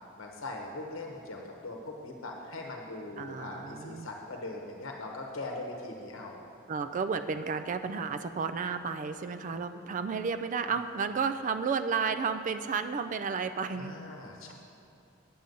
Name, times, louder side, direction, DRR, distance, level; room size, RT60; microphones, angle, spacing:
voice 1, 0.2-6.4 13.7-14.5, left 2 dB, 80° left, 1 dB, 0.9 m, -41 dB
voice 2, 3.2-4.1 6.7-14.0, right 5 dB, 40° right, 10 dB, 0.3 m, -32 dB
8.6 x 7.7 x 5.3 m, 2.6 s
head